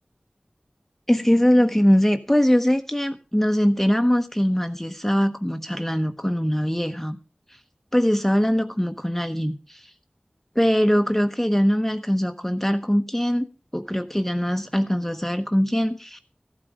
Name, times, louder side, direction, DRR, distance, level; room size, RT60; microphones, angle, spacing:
voice 1, 1.1-7.2 7.5-7.6 7.9-9.9 10.5-13.5 13.7-16.2, equal, 10° left, 0.9 m, -22 dB
14.5 x 8.8 x 5.0 m
wide cardioid pair, 40°, 3 cm